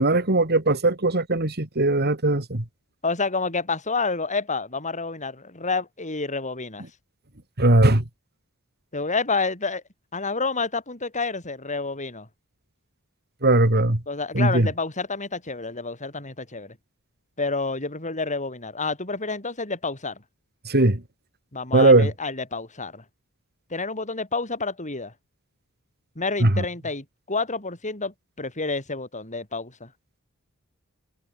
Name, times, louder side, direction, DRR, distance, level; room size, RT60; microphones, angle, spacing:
voice 1, 0.0-2.6 7.6-8.0 13.4-14.0 14.3-14.7 20.7-21.0 21.7-22.1 26.4-26.6, right 2 dB, 45° right, 2.7 m, -19 dB
voice 2, 3.0-6.9 8.9-9.8 10.1-12.3 14.1-16.8 17.4-20.2 21.5-23.0 23.7-25.1 26.1-29.9, left 3 dB, 35° left, 6.6 m, -29 dB
head